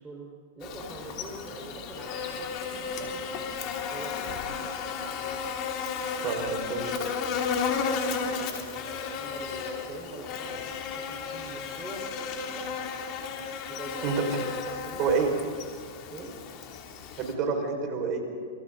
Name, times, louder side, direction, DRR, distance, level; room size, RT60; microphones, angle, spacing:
voice 1, 0.0-5.4 6.3-7.1 8.2-12.8 13.7-14.3 14.6-15.0 16.1-16.4, right 2 dB, 15° right, -3 dB, 5.0 m, -44 dB
Buzz, 0.6-17.3, left 5 dB, 40° left, 3.1 m, -34 dB
voice 2, 6.2-6.8 14.0-14.3 15.0-15.3 17.2-18.2, right 5 dB, 40° right, 3 dB, 5.6 m, -28 dB
28.0 x 24.0 x 4.1 m, 2.2 s
hypercardioid pair, 110°, 0 cm